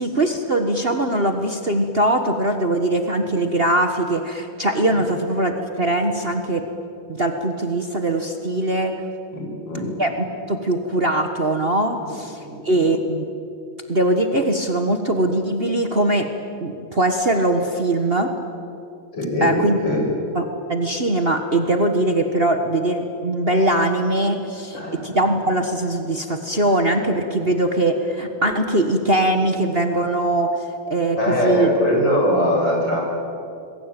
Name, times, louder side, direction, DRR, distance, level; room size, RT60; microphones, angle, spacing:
voice 1, 0.0-6.7 7.1-8.9 10.0-13.2 13.9-16.3 16.6-18.3 19.4-19.8 20.3-20.4 20.7-31.7, right 1 dB, 30° right, 5 dB, 1.5 m, -21 dB
voice 2, 9.3-9.9 12.0-12.1 12.4-12.8 19.1-20.1 24.7-25.1 31.2-33.0, equal, 65° left, 0 dB, 7.3 m, -22 dB
27.0 x 21.5 x 9.1 m, 2.6 s
omnidirectional pair, 2.2 m